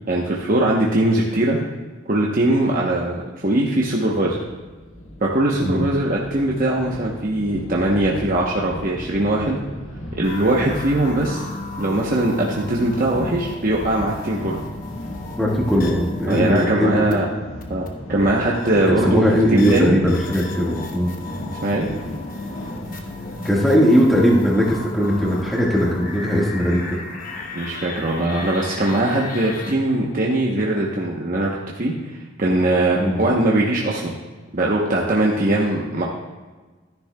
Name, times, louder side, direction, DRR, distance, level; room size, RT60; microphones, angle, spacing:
voice 1, 0.1-1.6 2.1-4.4 5.2-9.6 10.2-11.5 11.8-14.6 16.3-17.2 17.7-19.2 19.5-20.0 21.6-21.9 27.5-31.5 31.7-31.9 32.4-34.1 34.5-36.0, right 1 dB, 40° right, -3 dB, 0.9 m, -21 dB
sound 1, 4.3-23.5, equal, 85° left, 1.6 m, -36 dB
sound 2, 10.2-17.1 17.6-17.9 18.5-29.7, left 3 dB, 45° left, 1.0 m, -35 dB
voice 2, 15.4-17.2 18.9-21.1 23.4-27.0 33.0-33.2, equal, ahead, -4 dB, 1.6 m, -19 dB
13.0 x 10.5 x 2.3 m, 1.3 s
head